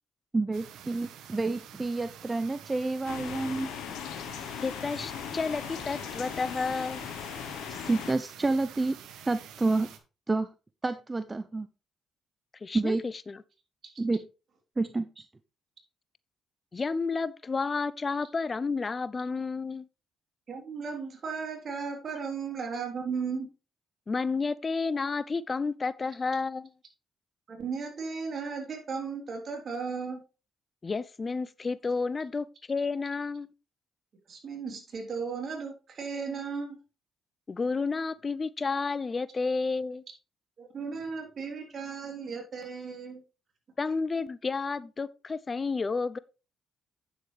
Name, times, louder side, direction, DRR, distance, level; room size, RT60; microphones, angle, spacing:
voice 1, 0.3-3.7 7.7-9.0 9.2-9.9 10.3-10.5 10.8-11.7 12.7-13.0 14.0-14.2 14.8-15.2, right 3 dB, 25° right, 0.7 m, -29 dB
sound 1, 0.5-10.0, right 9 dB, 75° right, 1.2 m, -48 dB
sound 2, 3.1-8.1, left 9 dB, 75° left, 0.9 m, -39 dB
voice 2, 4.6-7.1 12.6-13.0 13.3-13.4 16.7-19.9 24.1-26.7 30.8-33.5 37.5-40.0 43.8-46.2, left 4 dB, 35° left, 0.5 m, -31 dB
voice 3, 20.5-23.5 27.5-30.2 34.3-36.8 40.6-43.2, right 5 dB, 55° right, 3.5 m, -35 dB
9.1 x 7.9 x 3.3 m
hypercardioid pair, 50°, 0 cm